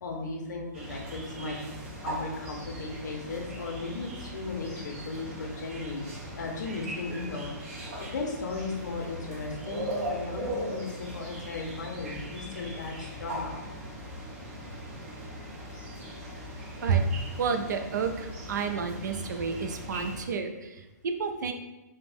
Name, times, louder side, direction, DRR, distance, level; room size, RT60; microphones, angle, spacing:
voice 1, 0.0-1.6 2.0-6.0 6.3-13.6, left 3 dB, 70° left, 0 dB, 0.5 m, -36 dB
sound 1, 0.7-20.2, equal, 45° right, 0.7 m, -39 dB
voice 2, 16.8-21.5, right 5 dB, 70° right, 6 dB, 0.4 m, -30 dB
3.3 x 2.1 x 2.5 m, 1.0 s
hypercardioid pair, 165°, 10 cm